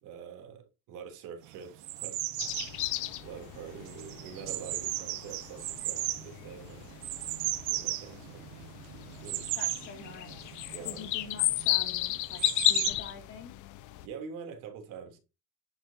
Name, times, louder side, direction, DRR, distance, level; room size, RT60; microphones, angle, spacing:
voice 1, 0.0-2.2 2.9-6.9 7.7-8.4 9.2-9.7 10.7-11.3 14.0-15.2, right 6 dB, 60° right, 3.2 m, -45 dB
sound 1, 1.5-12.9, right 16 dB, 85° right, 1.5 m, -37 dB
sound 2, 2.4-14.1, left 16 dB, 60° left, 1.0 m, -34 dB
voice 2, 9.6-10.4 10.8-13.6, left 5 dB, 40° left, 2.7 m, -46 dB
10.5 x 8.7 x 2.8 m
cardioid pair, 170°, 34 cm